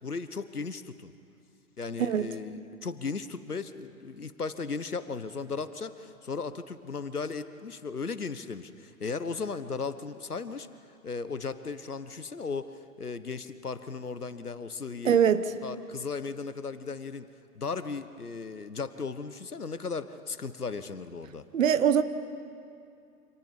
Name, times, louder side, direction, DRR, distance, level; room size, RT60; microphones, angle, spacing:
voice 1, 0.0-1.1 1.8-10.7 11.0-15.2 15.6-17.3 17.5-21.5, left 4 dB, 80° left, 12 dB, 1.3 m, -36 dB
voice 2, 1.8-2.3 15.0-15.5 21.5-22.0, right 8 dB, 60° right, 12 dB, 1.3 m, -23 dB
29.0 x 27.0 x 5.3 m, 2.5 s
figure-of-eight pair, 110°, 45 cm